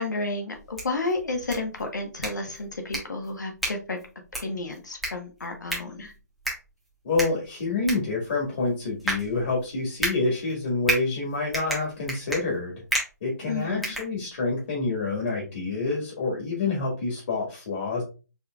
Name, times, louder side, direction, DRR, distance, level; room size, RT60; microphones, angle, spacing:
voice 1, 0.0-4.0 4.3-6.1 13.5-13.9, left 3 dB, 75° left, 3 dB, 1.2 m, -31 dB
sound 1, 0.5-14.7, right 1 dB, ahead, 1.0 m, -34 dB
voice 2, 7.0-12.8 13.2-18.0, left 3 dB, 45° left, -2 dB, 1.7 m, -27 dB
4.4 x 3.4 x 2.3 m, 0.33 s
figure-of-eight pair, 150°, 10 cm